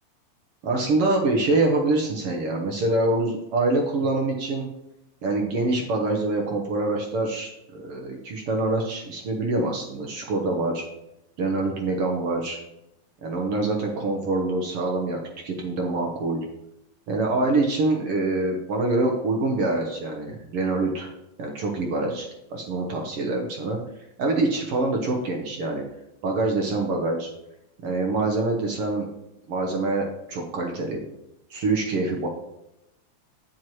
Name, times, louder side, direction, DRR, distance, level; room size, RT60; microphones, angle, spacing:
voice 1, 0.6-4.7 5.2-10.8 11.4-12.6 13.2-15.2 15.4-16.4 17.1-21.1 21.4-23.8 24.2-25.8 26.2-27.3 27.8-29.1 29.5-31.0 31.5-32.3, right 2 dB, 60° right, 1 dB, 1.6 m, -25 dB
9.2 x 7.6 x 3.1 m, 0.88 s
omnidirectional pair, 3.4 m